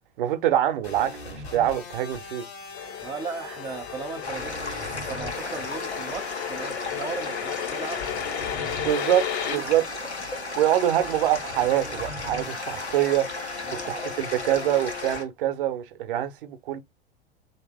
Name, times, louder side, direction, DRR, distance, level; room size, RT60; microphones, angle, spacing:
voice 1, 0.2-2.5 8.5-9.8 10.6-13.3 13.9-16.8, right 12 dB, 55° right, 0.7 m, -25 dB
sound 1, 0.8-15.2, left 4 dB, 70° left, 1.5 m, -40 dB
sound 2, 2.7-9.6, left 10 dB, 35° left, 0.6 m, -34 dB
voice 2, 3.0-8.0 9.5-9.7 13.6-13.9, right 5 dB, 10° right, 0.5 m, -37 dB
sound 3, 4.2-15.2, left 2 dB, 90° left, 1.1 m, -35 dB
3.2 x 2.9 x 3.4 m
figure-of-eight pair, 90°, 33 cm